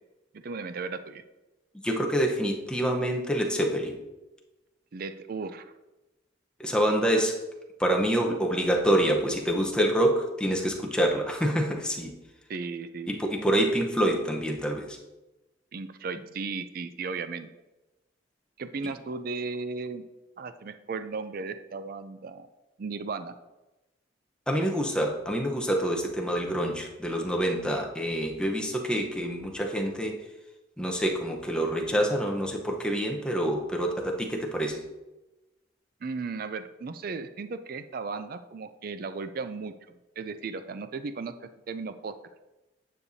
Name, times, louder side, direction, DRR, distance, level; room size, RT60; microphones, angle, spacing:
voice 1, 0.3-1.2 4.9-5.7 12.5-13.2 15.7-17.5 18.6-20.0 20.4-22.5 22.8-23.3 36.0-39.7 40.2-42.1, right 4 dB, 50° right, 11 dB, 0.4 m, -35 dB
voice 2, 1.8-4.0 6.6-7.4 7.8-12.1 13.1-15.0 18.8-18.9 24.5-30.2 30.8-34.8, right 1 dB, 5° left, 1 dB, 0.8 m, -26 dB
9.8 x 6.7 x 2.7 m, 1.0 s
head